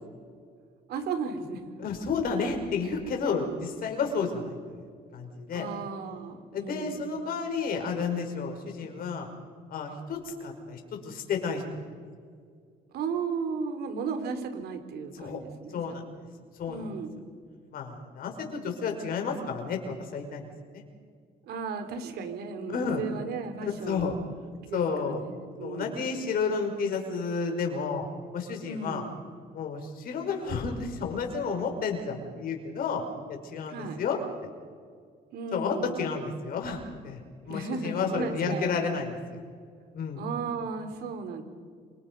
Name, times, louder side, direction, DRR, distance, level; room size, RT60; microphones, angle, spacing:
voice 1, 0.9-1.6 5.5-7.2 12.9-16.0 16.7-17.2 21.4-24.2 24.7-26.1 28.6-29.2 33.7-34.0 35.3-36.2 37.5-39.1 40.2-41.4, right 5 dB, 70° right, 7 dB, 3.7 m, -35 dB
voice 2, 1.8-4.8 5.1-5.7 6.5-9.3 9.7-11.8 15.1-15.4 15.7-16.1 16.6-16.8 17.7-20.5 20.7-20.8 22.7-23.0 23.9-24.2 24.7-25.2 25.6-29.1 29.5-33.0 33.3-34.2 35.5-37.2 37.5-39.4 39.9-40.2, left 5 dB, 60° left, 3 dB, 5.6 m, -31 dB
27.5 x 26.0 x 5.5 m, 2.1 s
cardioid pair, 110°, 17 cm